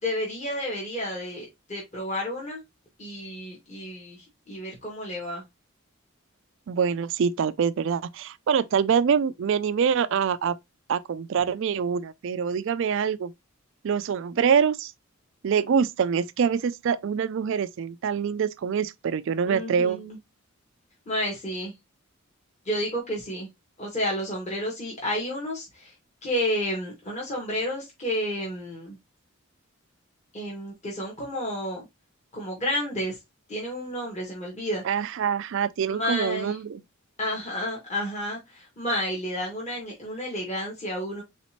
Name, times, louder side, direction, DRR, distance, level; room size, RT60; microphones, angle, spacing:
voice 1, 0.0-2.6 3.0-5.4 19.4-20.2 21.0-21.7 22.6-23.5 23.8-25.9 26.2-29.0 30.3-31.8 32.3-33.1 33.5-34.8 35.9-36.5 37.2-41.2, equal, 30° left, 1.7 m, -31 dB
voice 2, 6.7-10.5 10.9-13.3 13.8-14.9 15.4-20.0 34.8-36.8, right 7 dB, 60° right, 0.3 m, -25 dB
4.2 x 4.0 x 2.9 m
head